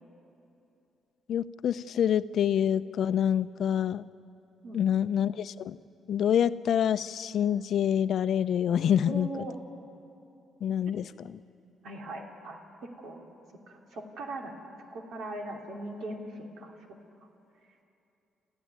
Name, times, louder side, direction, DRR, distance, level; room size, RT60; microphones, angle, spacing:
voice 1, 1.3-4.0 4.7-5.8 6.1-9.4 10.6-11.4, left 9 dB, 65° left, 14 dB, 0.6 m, -27 dB
voice 2, 4.6-5.0 9.1-9.5 11.8-12.6 13.0-13.3 13.7-16.7, right 1 dB, 75° right, 1 dB, 2.9 m, -40 dB
27.5 x 14.5 x 9.6 m, 2.7 s
cardioid pair, 90°, 0 cm